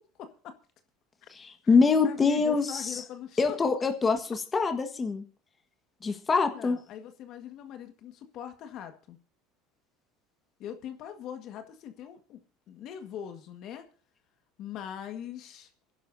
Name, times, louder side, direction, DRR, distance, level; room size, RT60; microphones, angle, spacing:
voice 1, 0.2-0.6 1.2-1.3 1.6-1.8 2.0-3.6 6.5-9.2 10.6-13.9 14.6-15.7, left 9 dB, 55° left, 7 dB, 1.7 m, -41 dB
voice 2, 1.3-3.0 3.4-5.2 6.0-6.8, left 4 dB, 25° left, 6 dB, 1.5 m, -25 dB
27.0 x 11.0 x 2.8 m, 0.35 s
supercardioid pair, 100°, 0 cm